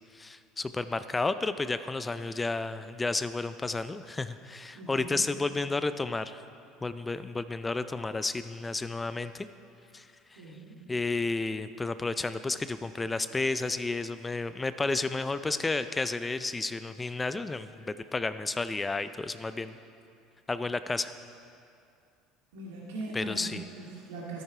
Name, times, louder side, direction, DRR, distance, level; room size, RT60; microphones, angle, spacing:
voice 1, 0.1-6.4 6.8-9.5 9.9-10.4 10.9-19.7 20.5-21.1 23.1-23.6, left 3 dB, 20° left, 12 dB, 0.4 m, -32 dB
voice 2, 4.7-5.2 10.4-10.8 22.5-24.4, right 2 dB, 85° right, -4 dB, 2.0 m, -40 dB
12.5 x 9.3 x 4.8 m, 2.6 s
supercardioid pair, 85°, 0 cm